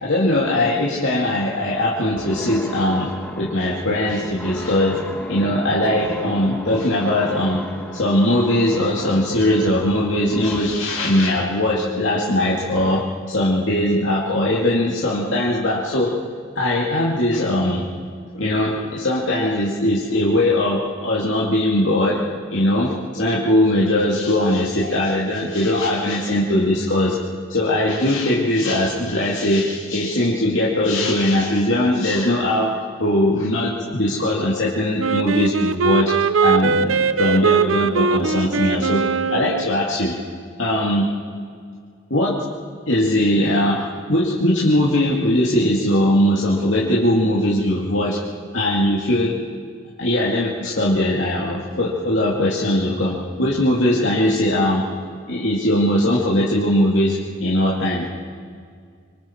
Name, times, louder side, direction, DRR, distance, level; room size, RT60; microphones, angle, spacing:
voice 1, 0.0-3.1 3.4-5.0 5.3-7.6 7.9-16.1 16.6-17.8 18.3-22.2 22.5-27.2 27.5-36.1 36.4-39.0 39.3-40.2 40.6-41.1 42.1-42.4 42.9-48.2 48.5-49.4 50.0-54.9 55.3-58.0, left 1 dB, 65° left, -5 dB, 2.5 m, -20 dB
sound 1, 2.2-10.8 12.8-13.0, equal, 5° left, 1.7 m, -35 dB
Wind instrument woodwind instrument, 35.0-39.7, right 5 dB, 75° right, 0.7 m, -20 dB
25.5 x 25.0 x 4.6 m, 2.1 s
head